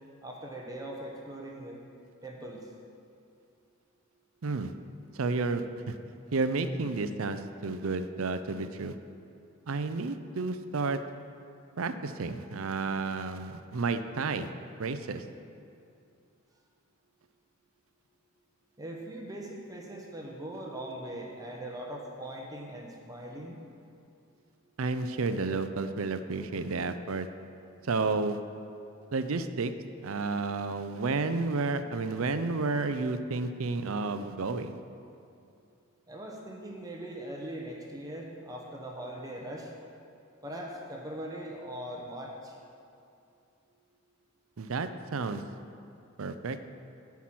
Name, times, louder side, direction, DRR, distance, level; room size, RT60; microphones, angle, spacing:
voice 1, 0.2-1.8 2.2-2.7 18.8-23.6 36.1-39.7 40.4-42.6, right 1 dB, 15° right, -1 dB, 1.0 m, -40 dB
voice 2, 4.4-4.7 5.1-6.0 6.3-8.9 9.7-11.0 11.8-14.5 14.8-15.2 24.8-27.3 27.8-28.4 29.1-29.7 30.0-34.8 44.6-45.4 46.2-46.6, right 3 dB, 70° right, 10 dB, 0.6 m, -31 dB
10.0 x 5.9 x 7.7 m, 2.6 s
head